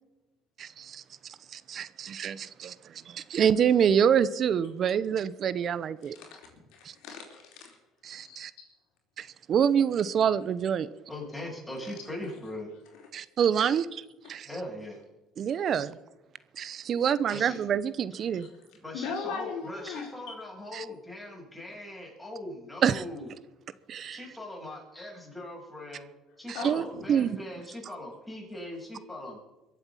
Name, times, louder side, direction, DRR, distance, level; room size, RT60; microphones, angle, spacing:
voice 1, 0.6-1.0 1.5-6.2 6.8-6.9 8.0-8.5 9.2-10.9 13.1-14.0 14.3-14.5 15.4-16.0 16.6-18.5 20.7-20.8 22.8-23.0 23.9-24.3 26.5-27.4, right 8 dB, 50° right, 17 dB, 0.8 m, -26 dB
voice 2, 6.0-7.8 8.2-8.7 11.8-12.0 12.9-13.0 18.4-18.5 18.9-20.4 26.5-27.1, left 5 dB, 80° left, 2 dB, 4.1 m, -39 dB
voice 3, 11.1-12.7 14.4-15.0 17.3-17.6 18.8-23.3 24.1-26.1 26.4-29.4, left 1 dB, 10° left, -1 dB, 7.2 m, -40 dB
23.0 x 8.1 x 7.3 m, 1.0 s
cardioid pair, 100°, 0 cm